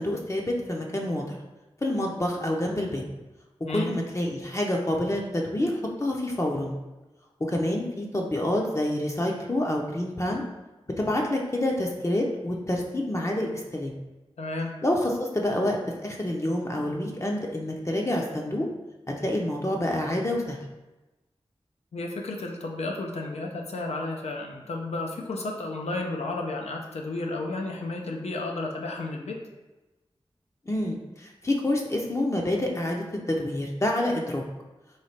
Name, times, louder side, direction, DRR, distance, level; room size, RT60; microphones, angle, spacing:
voice 1, 0.0-1.4 1.8-3.0 3.7-6.8 7.4-10.4 11.0-13.9 14.8-18.7 19.1-20.6 30.7-34.4, left 1 dB, 30° left, -1 dB, 0.6 m, -27 dB
voice 2, 14.4-14.7 21.9-29.4, left 2 dB, 85° left, 1 dB, 0.5 m, -32 dB
3.2 x 2.3 x 4.1 m, 1.1 s
cardioid pair, 40°, 11 cm